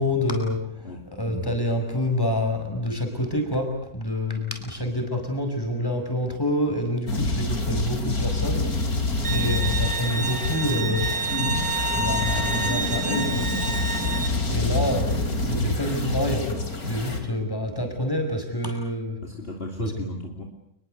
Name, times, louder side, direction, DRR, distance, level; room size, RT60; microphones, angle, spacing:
voice 1, 0.0-8.9 9.2-13.5 14.5-15.1 15.4-19.2 19.8-19.9, left 1 dB, 15° left, 4 dB, 6.0 m, -27 dB
sound 1, 7.1-17.2, left 2 dB, 75° left, 3.8 m, -27 dB
voice 2, 8.9-9.2 14.3-14.7 19.2-20.4, left 2 dB, 40° left, 0 dB, 3.4 m, -36 dB
Bowed string instrument, 9.2-14.3, right 3 dB, 35° right, 2.8 m, -29 dB
29.0 x 21.5 x 8.2 m, 0.73 s
omnidirectional pair, 1.6 m